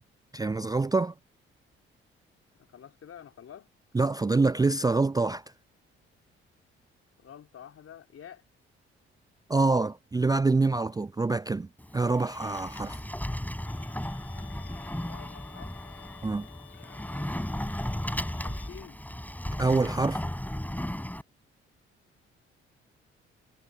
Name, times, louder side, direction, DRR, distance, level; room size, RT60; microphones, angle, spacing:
voice 1, 0.3-1.1 3.9-5.4 9.5-11.7 11.9-13.0 16.2-16.5 19.6-20.2, right 3 dB, 10° right, 0.5 m, -25 dB
voice 2, 2.6-3.7 7.2-8.4 15.0-15.8 16.7-17.5 18.4-19.0, left 9 dB, 50° left, 3.3 m, -49 dB
Sliding door, 11.8-21.2, left 1 dB, 5° left, 5.8 m, -35 dB
Bowed string instrument, 13.7-18.7, left 23 dB, 70° left, 7.2 m, -53 dB
figure-of-eight pair, 40°, 31 cm